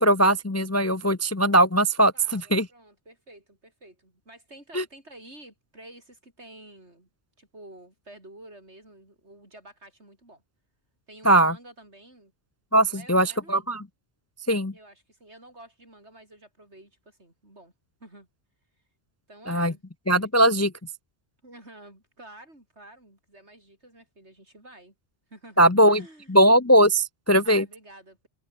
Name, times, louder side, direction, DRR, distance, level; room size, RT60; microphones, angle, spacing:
voice 1, 0.0-2.7 4.7-4.8 11.2-11.5 12.7-13.8 14.5-14.7 19.5-19.7 20.1-20.7 25.6-26.0 26.3-27.6, right 1 dB, 15° left, 0.6 m, -20 dB
voice 2, 2.1-7.1 7.4-10.4 11.1-12.3 12.8-13.7 14.7-17.7 18.0-18.3 19.3-19.8 20.2-20.6 21.4-24.9 25.3-26.4 27.4-28.3, right 1 dB, 70° right, 8.0 m, -50 dB
omnidirectional pair, 1.2 m